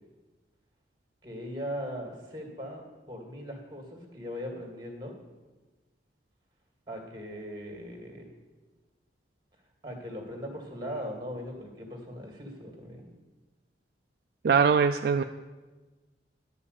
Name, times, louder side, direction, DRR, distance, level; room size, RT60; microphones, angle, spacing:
voice 1, 1.2-5.2 6.9-8.3 9.8-13.0, equal, 25° right, 1 dB, 2.2 m, -39 dB
voice 2, 14.4-15.2, right 6 dB, 60° right, 7 dB, 0.3 m, -22 dB
11.0 x 5.5 x 8.2 m, 1.2 s
head